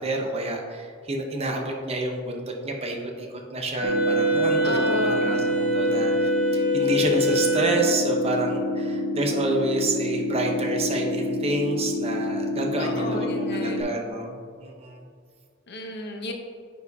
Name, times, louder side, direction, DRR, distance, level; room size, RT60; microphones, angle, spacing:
voice 1, 0.0-15.0, right 2 dB, 30° right, 2 dB, 0.7 m, -29 dB
sound 1, 3.8-13.8, left 1 dB, 35° left, 1.2 m, -28 dB
Wind instrument woodwind instrument, 3.8-8.3, right 1 dB, 75° right, 1.7 m, -24 dB
voice 2, 4.6-5.3 12.8-13.9 15.7-16.3, left 2 dB, 55° left, 3 dB, 0.8 m, -33 dB
9.7 x 4.7 x 2.7 m, 2.1 s
head